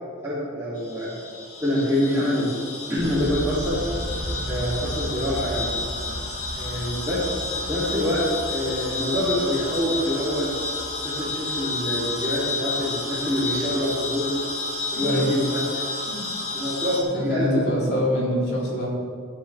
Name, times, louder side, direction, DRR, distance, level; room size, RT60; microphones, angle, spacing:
voice 1, 0.2-1.1 1.6-2.6 2.9-3.8 4.5-5.7 6.5-7.3 7.6-10.5 11.0-14.3 14.9-15.8 16.5-17.6, equal, 15° right, -12 dB, 2.9 m, -25 dB
sound 1, 0.8-17.0, left 3 dB, 90° left, 2.8 m, -31 dB
sound 2, 3.0-14.8, equal, 55° right, 1.6 m, -37 dB
voice 2, 14.9-15.3 16.1-16.2 17.1-18.9, equal, 55° left, -5 dB, 3.5 m, -25 dB
17.0 x 9.9 x 3.5 m, 2.1 s
head